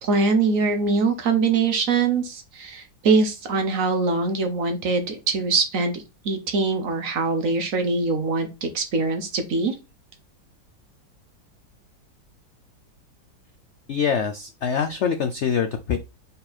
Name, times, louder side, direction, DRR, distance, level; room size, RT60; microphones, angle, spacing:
voice 1, 0.0-9.7, right 4 dB, 55° right, 7 dB, 1.2 m, -23 dB
voice 2, 13.9-16.0, left 7 dB, 70° left, 8 dB, 0.6 m, -24 dB
5.1 x 4.3 x 4.3 m, 0.28 s
omnidirectional pair, 1.9 m